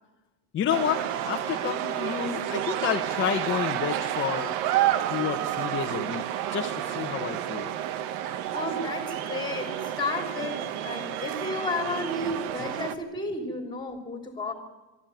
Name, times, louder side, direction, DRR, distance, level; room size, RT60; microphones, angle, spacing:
voice 1, 0.5-4.5 5.1-6.2 6.5-7.7, left 9 dB, 25° left, 4 dB, 1.2 m, -30 dB
sound 1, 0.7-12.9, right 12 dB, 65° right, 1.4 m, -30 dB
voice 2, 8.5-14.5, left 2 dB, 10° left, 5 dB, 3.5 m, -32 dB
23.0 x 13.5 x 9.3 m, 1.1 s
supercardioid pair, 145°, 47 cm